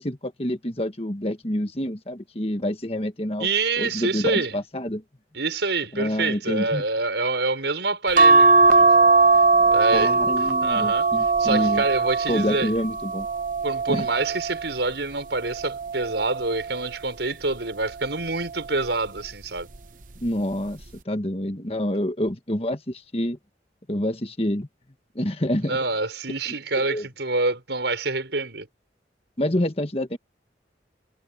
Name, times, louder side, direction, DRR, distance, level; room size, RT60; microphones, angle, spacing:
voice 1, 0.0-3.5 3.8-5.0 5.9-6.8 9.9-11.8 12.3-13.3 13.9-14.1 20.2-23.4 23.9-24.7 25.1-25.8 26.8-27.1 29.4-30.2, left 1 dB, 35° left, 1.6 m, -27 dB
voice 2, 3.4-4.6 5.3-8.9 9.7-11.1 11.4-12.7 13.6-19.7 25.6-28.7, right 3 dB, 75° right, 5.7 m, -26 dB
sound 1, 8.2-14.8 15.4-16.8 18.1-18.5 18.8-18.9, right 3 dB, 45° right, 0.8 m, -20 dB
head